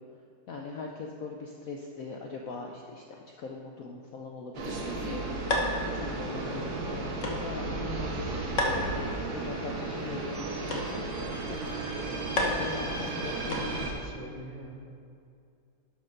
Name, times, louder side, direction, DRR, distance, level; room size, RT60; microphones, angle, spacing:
voice 1, 0.5-3.0 3.4-5.3 5.8-11.6 12.4-13.9, left 4 dB, 70° left, 1 dB, 0.8 m, -41 dB
sound 1, 4.5-13.9, right 2 dB, 85° right, 2.1 m, -34 dB
sound 2, 5.5-14.1, left 1 dB, 45° left, 1.3 m, -36 dB
voice 2, 13.8-15.0, right 2 dB, 65° right, 1 dB, 1.8 m, -44 dB
11.5 x 5.0 x 5.3 m, 2.4 s
omnidirectional pair, 2.1 m